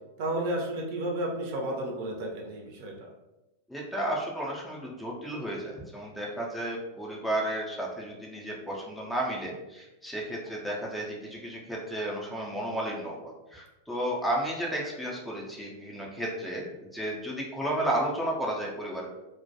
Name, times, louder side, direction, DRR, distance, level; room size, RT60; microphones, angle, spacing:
voice 1, 0.2-3.1, right 1 dB, 50° right, -1 dB, 0.5 m, -32 dB
voice 2, 3.7-13.2 13.5-19.1, right 1 dB, 5° left, -2 dB, 0.4 m, -33 dB
2.2 x 2.1 x 2.7 m, 1.0 s
figure-of-eight pair, 90°, 0 cm